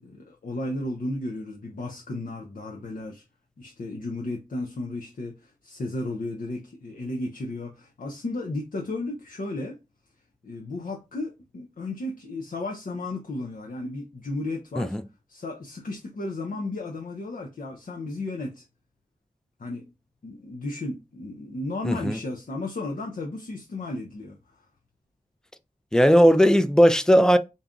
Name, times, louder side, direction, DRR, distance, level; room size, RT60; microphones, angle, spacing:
voice 1, 0.0-3.2 3.6-9.8 10.4-15.0 15.3-18.6 19.6-19.8 20.2-24.6, left 2 dB, 85° left, 0.6 m, -34 dB
voice 2, 21.8-22.2 25.9-27.4, equal, 5° left, 0.4 m, -17 dB
3.9 x 2.4 x 3.6 m
wide cardioid pair, 70°, 14 cm